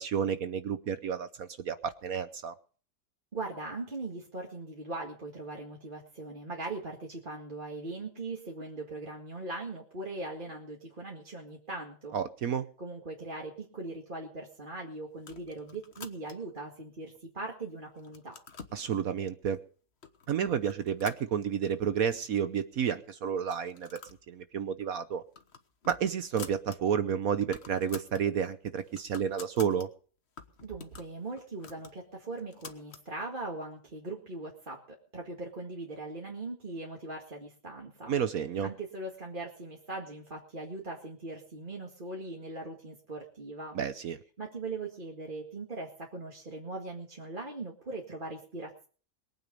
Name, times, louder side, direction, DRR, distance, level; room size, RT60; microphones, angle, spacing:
voice 1, 0.0-2.5 12.1-12.6 18.7-19.6 20.3-24.0 24.3-25.2 25.9-29.9 38.1-38.7 43.7-44.2, right 8 dB, 60° right, 11 dB, 1.2 m, -31 dB
voice 2, 3.3-12.2 12.8-18.4 30.6-38.1 38.6-43.8 44.4-48.9, right 2 dB, 30° right, -1 dB, 2.1 m, -40 dB
sound 1, 15.2-16.6 17.2-17.7 18.0-18.8 19.5-19.6 20.0-20.3 20.6-21.9 22.2-22.3 22.5-22.6 23.4-24.2 24.6-24.7 25.1-26.8 27.1-27.2 27.4-28.2 28.6-29.9 30.4-33.1, left 5 dB, 40° left, 1.5 m, -49 dB
22.0 x 9.2 x 5.4 m, 0.42 s
omnidirectional pair, 1.8 m